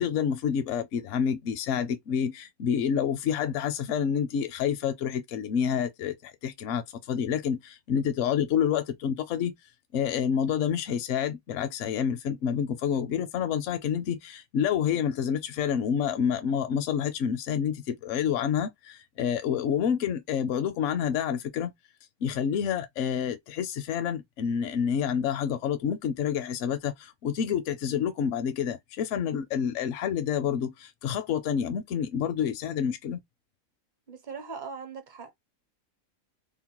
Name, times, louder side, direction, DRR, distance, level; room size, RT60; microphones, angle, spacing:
voice 1, 0.0-9.5 9.9-21.7 22.2-33.2, left 8 dB, 70° left, 0.8 m, -28 dB
voice 2, 34.1-35.4, right 5 dB, 45° right, 0.7 m, -40 dB
2.9 x 2.1 x 2.9 m
omnidirectional pair, 1.5 m